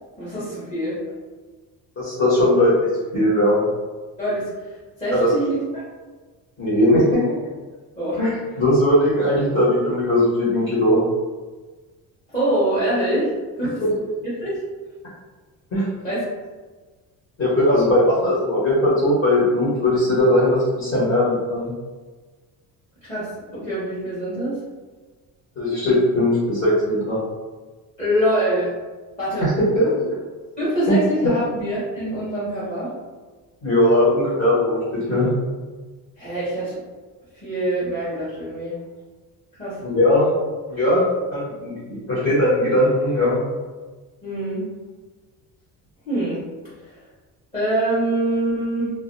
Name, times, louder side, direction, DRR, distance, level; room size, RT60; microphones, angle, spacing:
voice 1, 0.2-1.0 4.2-4.5 5.0-5.6 8.0-8.2 12.3-13.3 13.6-13.8 14.2-14.6 16.0-16.2 23.0-24.6 28.0-28.7 29.2-29.5 30.6-32.9 36.2-36.8 37.4-38.8 39.6-39.8 44.2-44.6 46.0-46.5 46.8-47.0 47.5-48.9, right 1 dB, 15° left, -12 dB, 0.8 m, -24 dB
voice 2, 2.0-2.9 3.1-3.6 5.1-5.3 6.6-7.4 8.2-11.0 13.8-13.9 15.7-15.9 17.4-21.7 25.5-27.2 29.4-30.1 30.9-31.0 33.6-34.8 35.1-35.3 39.8-40.3 40.7-41.0 41.3-43.4, left 1 dB, 40° left, -9 dB, 1.2 m, -19 dB
2.4 x 2.2 x 2.5 m, 1.3 s
cardioid pair, 140°, 37 cm